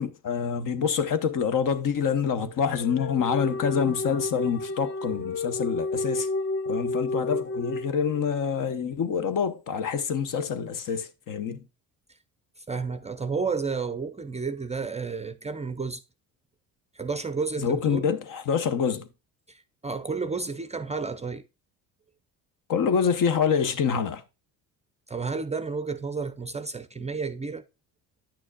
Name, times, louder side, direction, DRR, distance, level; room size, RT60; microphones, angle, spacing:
voice 1, 0.0-6.3 6.7-11.6 17.6-19.1 22.7-24.2, left 7 dB, 50° left, 0.9 m, -26 dB
sound 1, 2.1-8.4, left 2 dB, 30° left, 0.6 m, -31 dB
voice 2, 12.6-16.0 16.9-18.1 19.5-21.4 25.1-27.6, right 4 dB, 15° right, 0.5 m, -31 dB
10.0 x 6.2 x 2.3 m
supercardioid pair, 75°, 41 cm